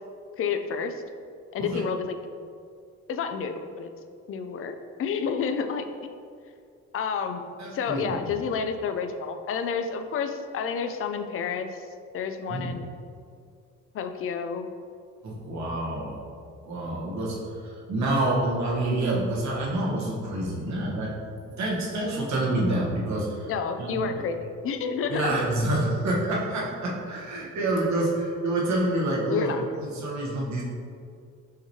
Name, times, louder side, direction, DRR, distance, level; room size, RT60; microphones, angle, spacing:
voice 1, 0.4-1.0 1.5-2.1 3.1-3.9 4.3-5.9 6.9-7.5 7.7-11.8 12.1-12.9 13.9-14.7 23.5-25.4 29.3-29.6, left 6 dB, 45° left, 7 dB, 0.4 m, -30 dB
voice 2, 7.6-8.4 12.5-12.8 15.2-16.2 16.6-21.1 21.4-23.5 23.8-24.1 25.1-29.5 29.8-30.6, right 1 dB, 65° right, -4 dB, 1.2 m, -27 dB
5.7 x 3.1 x 2.8 m, 2.3 s
cardioid pair, 90°, 30 cm